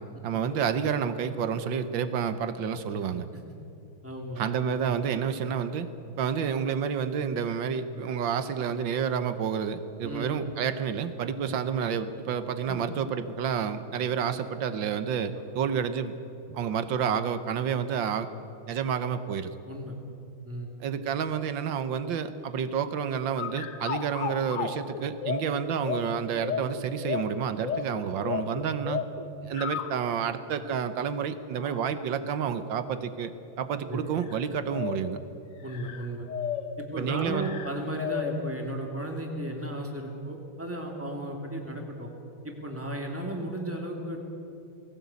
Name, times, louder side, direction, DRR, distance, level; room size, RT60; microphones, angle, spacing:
voice 1, 0.0-3.3 4.4-5.9 6.2-16.1 16.5-18.3 18.7-19.5 20.8-29.0 29.4-33.3 33.6-35.2 37.0-37.5, right 7 dB, 70° right, 11 dB, 1.6 m, -29 dB
voice 2, 4.0-4.4 10.0-10.4 11.4-11.6 12.7-12.9 19.7-20.0 20.4-20.7 33.9-34.0 35.6-36.3 36.8-42.1 42.4-44.2, right 1 dB, 5° right, 1 dB, 2.6 m, -35 dB
sound 1, 23.4-30.1 30.7-30.8 31.6-32.0 32.9-33.1 34.2-34.4 34.7-35.2 35.7-36.9 37.3-38.6, left 7 dB, 50° left, 1.1 m, -34 dB
20.0 x 17.5 x 8.3 m, 2.8 s
omnidirectional pair, 2.2 m